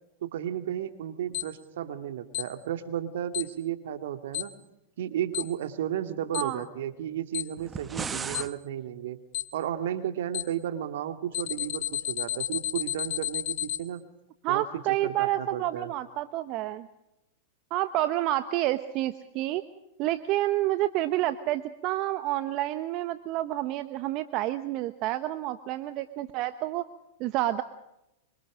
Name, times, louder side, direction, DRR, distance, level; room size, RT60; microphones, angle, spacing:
voice 1, 0.2-4.5 5.0-9.2 9.5-14.0 14.5-15.9, right 10 dB, 70° right, 8 dB, 2.4 m, -33 dB
Alarm, 1.3-1.4 2.3-2.4 3.3-3.4 4.3-4.4 5.3-5.4 6.3-6.4 7.3-7.4 8.3-8.4 9.3-9.4 10.3-10.4 11.3-13.8, left 13 dB, 55° left, 2.6 m, -30 dB
sound 1, 7.6-8.5, right 5 dB, 20° right, 1.0 m, -35 dB
voice 2, 14.4-16.9 17.7-19.6 20.0-26.9 27.2-27.6, right 15 dB, 45° right, 11 dB, 1.1 m, -29 dB
25.5 x 25.0 x 5.1 m, 0.88 s
hypercardioid pair, 105°, 0 cm